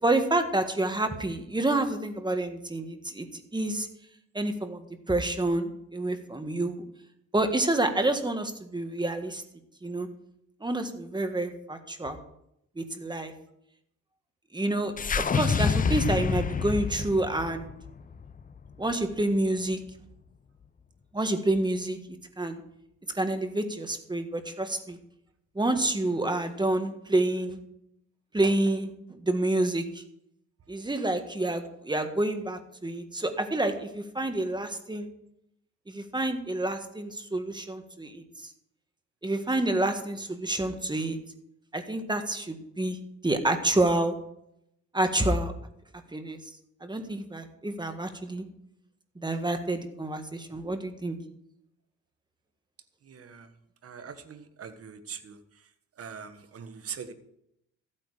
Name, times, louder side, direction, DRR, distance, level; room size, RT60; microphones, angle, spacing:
voice 1, 0.0-3.9 4.3-6.8 7.3-9.4 9.8-10.1 10.6-12.2 12.8-13.3 14.5-17.7 18.8-19.8 21.1-22.0 22.4-22.6 23.1-25.0 25.5-27.6 28.3-30.0 30.7-35.1 35.9-38.5 39.2-41.2 41.7-43.0 43.2-44.1 44.9-45.5 46.1-46.4 46.8-48.4 49.1-51.2, right 2 dB, 15° right, 7 dB, 1.6 m, -28 dB
sound 1, 15.0-19.3, left 6 dB, 30° left, 0.6 m, -28 dB
voice 2, 53.1-53.5 53.8-55.3 56.0-57.1, right 7 dB, 50° right, 9 dB, 1.4 m, -42 dB
14.5 x 8.8 x 4.9 m, 0.77 s
cardioid pair, 90°, 30 cm